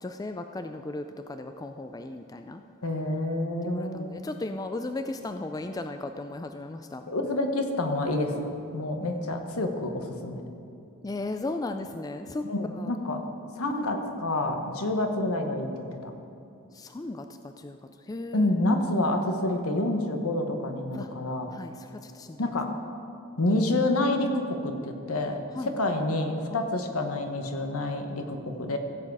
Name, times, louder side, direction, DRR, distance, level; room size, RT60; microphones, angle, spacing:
voice 1, 0.0-2.6 3.6-7.1 9.0-9.2 11.0-12.4 12.8-12.9 13.8-13.9 16.7-17.8 18.1-18.5 20.9-21.1 21.5-22.5 25.5-25.9 26.5-26.7, left 2 dB, 15° left, 7 dB, 0.3 m, -36 dB
voice 2, 2.8-4.2 7.1-10.4 12.4-13.2 13.6-16.1 18.3-21.5 22.4-22.7 23.4-28.8, left 2 dB, 80° left, 5 dB, 1.1 m, -28 dB
15.5 x 7.7 x 4.8 m, 2.6 s
head